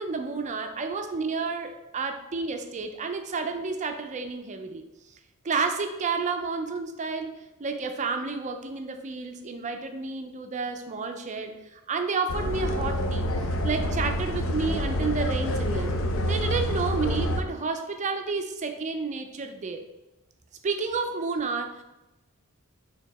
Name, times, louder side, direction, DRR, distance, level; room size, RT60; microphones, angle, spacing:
voice 1, 0.0-4.8 5.4-7.3 7.6-13.3 13.6-15.9 16.2-19.8 20.6-21.8, right 4 dB, 35° right, 6 dB, 0.4 m, -30 dB
sound 1, 12.3-17.4, equal, 65° left, 0.5 m, -27 dB
4.5 x 2.9 x 4.1 m, 1.0 s
head